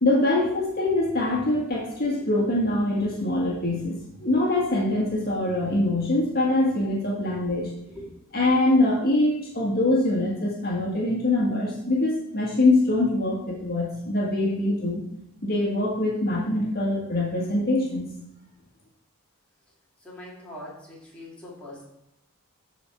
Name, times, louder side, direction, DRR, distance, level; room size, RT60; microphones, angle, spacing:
voice 1, 0.0-3.9 4.2-7.7 8.3-15.0 15.4-18.0, left 2 dB, 45° left, -3 dB, 1.7 m, -23 dB
voice 2, 20.0-21.8, left 1 dB, 5° left, -6 dB, 2.7 m, -42 dB
12.5 x 4.4 x 4.6 m, 0.80 s
head